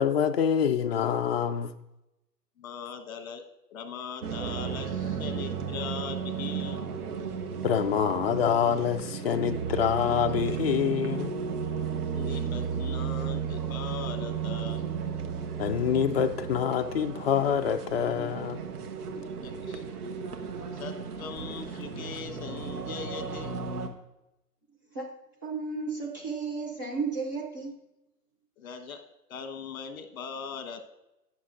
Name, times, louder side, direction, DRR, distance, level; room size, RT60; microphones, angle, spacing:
voice 1, 0.0-1.7 7.6-11.3 15.6-18.6, left 8 dB, 40° left, 0.5 m, -26 dB
voice 2, 2.6-3.4 3.7-6.8 12.1-14.8 19.4-19.8 20.8-23.6 28.6-29.0 29.3-30.8, left 6 dB, 55° left, 1.3 m, -40 dB
sound 1, 4.2-23.9, right 6 dB, 65° right, 1.3 m, -34 dB
voice 3, 25.4-27.7, right 4 dB, 15° right, 0.5 m, -33 dB
18.5 x 6.7 x 2.5 m
hypercardioid pair, 145°, 49 cm